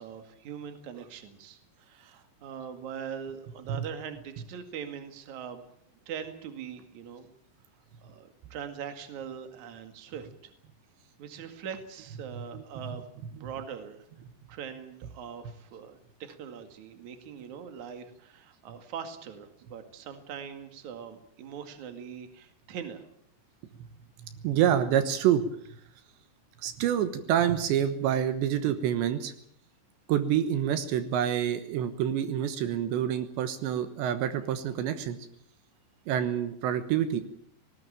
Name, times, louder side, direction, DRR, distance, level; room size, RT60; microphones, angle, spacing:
voice 1, 0.0-5.6 6.1-7.3 8.0-10.5 11.2-13.0 13.4-14.0 14.5-23.0, right 7 dB, 50° right, 7 dB, 3.0 m, -42 dB
voice 2, 24.2-25.5 26.6-29.3 30.1-35.2 36.1-37.2, right 10 dB, 80° right, 10 dB, 3.4 m, -27 dB
19.0 x 18.5 x 8.9 m, 0.66 s
omnidirectional pair, 5.1 m